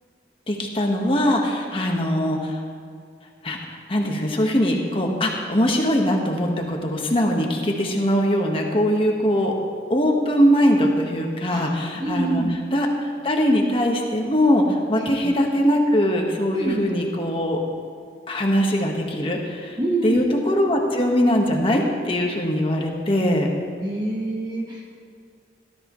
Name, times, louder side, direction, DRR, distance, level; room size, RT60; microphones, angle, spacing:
voice 1, 0.5-2.6 3.4-3.6 3.9-9.5 9.9-12.4 12.7-12.9 13.2-17.6 18.3-19.8 20.0-23.5, equal, 30° left, 1 dB, 1.5 m, -21 dB
voice 2, 11.5-12.5 14.9-15.4 16.5-17.0 19.8-20.2 23.8-24.8, right 2 dB, 25° right, -2 dB, 1.3 m, -27 dB
18.5 x 13.0 x 3.2 m, 2.2 s
head